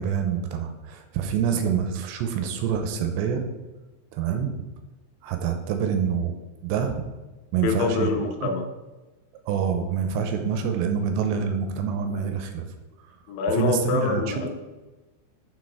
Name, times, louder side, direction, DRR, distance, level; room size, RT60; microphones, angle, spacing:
voice 1, 0.0-3.4 4.1-4.5 5.2-7.0 7.5-8.1 8.4-8.5 9.5-12.7 13.5-14.5, right 7 dB, 85° right, 5 dB, 2.8 m, -26 dB
voice 2, 7.6-8.7 13.3-14.5, left 5 dB, 80° left, 4 dB, 3.1 m, -25 dB
6.8 x 6.3 x 4.7 m, 1.2 s
omnidirectional pair, 5.2 m